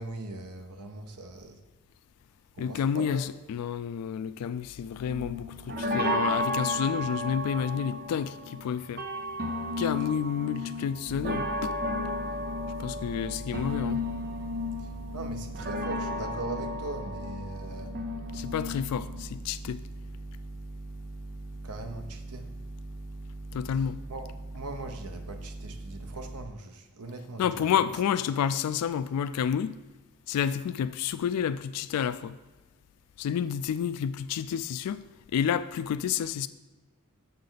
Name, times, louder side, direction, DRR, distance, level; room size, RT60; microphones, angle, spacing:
voice 1, 0.0-1.6 2.5-3.3 14.8-18.0 21.6-22.5 24.1-27.7, right 2 dB, 85° right, 0.8 m, -40 dB
voice 2, 2.6-9.0 9.8-11.8 12.8-14.0 18.3-19.8 23.5-24.0 27.4-29.8 30.3-32.4 33.2-35.0 35.3-36.5, left 8 dB, 85° left, 0.3 m, -30 dB
sound 1, 5.1-19.2, left 1 dB, 45° right, 0.8 m, -33 dB
sound 2, 11.1-26.5, right 2 dB, 20° right, 0.3 m, -41 dB
6.7 x 6.5 x 3.9 m
head